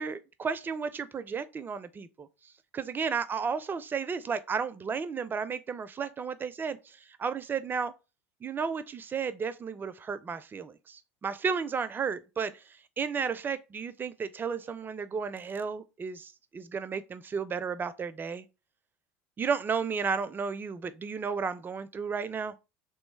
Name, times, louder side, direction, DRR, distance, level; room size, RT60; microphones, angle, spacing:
voice 1, 0.0-2.3 2.7-6.8 7.2-7.9 8.4-12.5 13.0-18.4 19.4-22.5, right 5 dB, 25° right, 0.4 m, -33 dB
3.2 x 3.1 x 3.2 m
hypercardioid pair, 75°, 8 cm